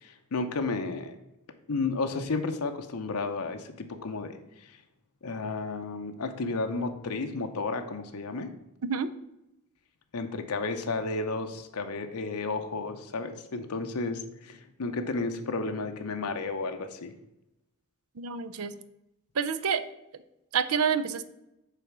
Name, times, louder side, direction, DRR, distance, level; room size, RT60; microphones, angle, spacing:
voice 1, 0.0-1.1 1.7-4.4 5.2-8.5 10.1-17.1, left 3 dB, 90° left, 6 dB, 0.7 m, -32 dB
voice 2, 18.2-18.7 19.3-19.8 20.5-21.2, right 6 dB, 75° right, 13 dB, 0.5 m, -28 dB
6.8 x 4.2 x 5.9 m, 0.90 s
head